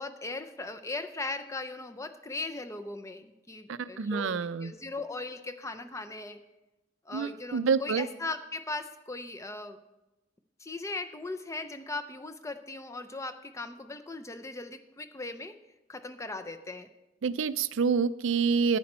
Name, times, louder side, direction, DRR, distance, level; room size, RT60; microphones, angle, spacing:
voice 1, 0.0-6.4 7.1-9.8 10.6-15.6 15.9-16.9, left 3 dB, 15° left, 9 dB, 0.5 m, -38 dB
voice 2, 3.7-4.7 7.1-8.1 17.2-18.8, right 5 dB, 65° right, 15 dB, 0.4 m, -27 dB
11.0 x 9.6 x 4.3 m, 1.0 s
head